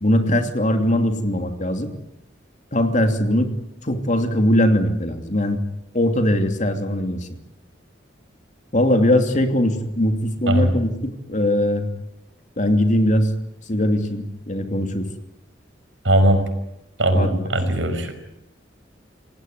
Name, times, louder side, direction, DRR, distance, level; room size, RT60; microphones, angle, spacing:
voice 1, 0.0-1.9 2.7-3.5 3.8-5.6 5.9-7.3 8.7-11.9 12.6-13.3 13.7-15.1 17.1-17.5, left 1 dB, 40° left, 6 dB, 2.9 m, -20 dB
voice 2, 16.0-16.4 17.0-18.1, right 1 dB, 80° right, 8 dB, 5.4 m, -19 dB
29.0 x 18.0 x 9.6 m, 0.86 s
head